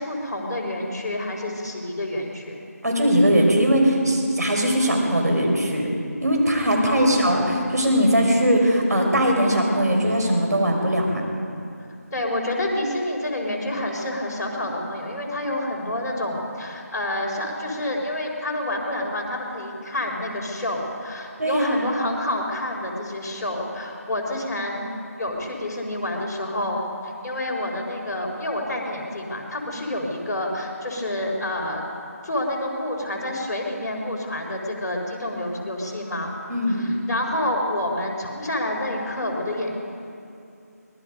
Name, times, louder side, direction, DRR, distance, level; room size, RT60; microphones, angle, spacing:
voice 1, 0.0-2.6 6.9-7.4 12.1-24.9 25.2-31.8 32.2-36.3 36.7-39.7, left 1 dB, 15° left, -8 dB, 4.1 m, -28 dB
voice 2, 2.8-5.9 6.2-11.2 21.4-21.9 36.5-36.9, equal, 75° right, 1 dB, 5.8 m, -20 dB
25.0 x 19.5 x 5.3 m, 2.5 s
figure-of-eight pair, 170°, 9 cm